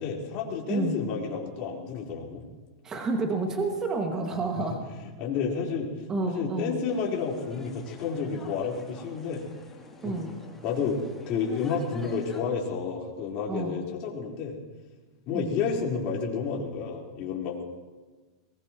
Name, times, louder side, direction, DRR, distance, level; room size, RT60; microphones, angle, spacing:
voice 1, 0.0-2.4 5.2-5.9 6.3-9.4 10.0-10.2 10.6-11.0 11.3-14.6 15.3-17.6, left 5 dB, 45° left, -2 dB, 4.3 m, -30 dB
voice 2, 0.7-1.0 2.8-4.8 6.1-6.8 10.0-10.3 13.5-13.8 15.3-15.5, right 3 dB, 20° right, 2 dB, 2.0 m, -29 dB
sound 1, 6.9-12.4, left 3 dB, 10° left, 2.9 m, -48 dB
23.0 x 20.5 x 3.1 m, 1.3 s
supercardioid pair, 135°, 3 cm